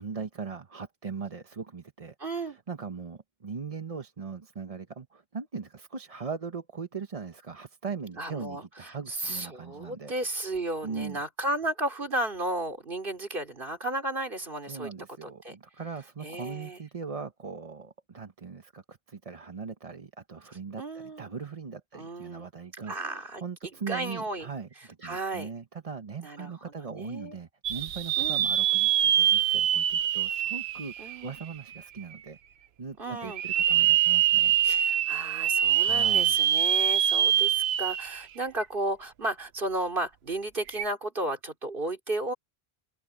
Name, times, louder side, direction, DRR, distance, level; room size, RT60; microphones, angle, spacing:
voice 1, 0.0-10.1 10.8-11.2 14.7-24.7 25.0-32.4 32.8-34.5 35.4-36.4, right 5 dB, 35° right, 0.9 m, -40 dB
voice 2, 2.2-2.6 8.2-14.9 15.2-15.6 16.2-16.8 20.8-21.3 21.9-22.5 22.9-23.4 23.9-24.5 25.0-25.5 26.2-27.4 28.2-28.4 31.0-31.3 33.0-33.4 34.6-42.3, right 2 dB, 60° right, 3.6 m, -33 dB
sound 1, 27.6-31.6 32.1-32.2 33.3-38.2 38.6-38.7 40.7-40.8, right 10 dB, 85° right, 0.9 m, -24 dB
open air
omnidirectional pair, 1.0 m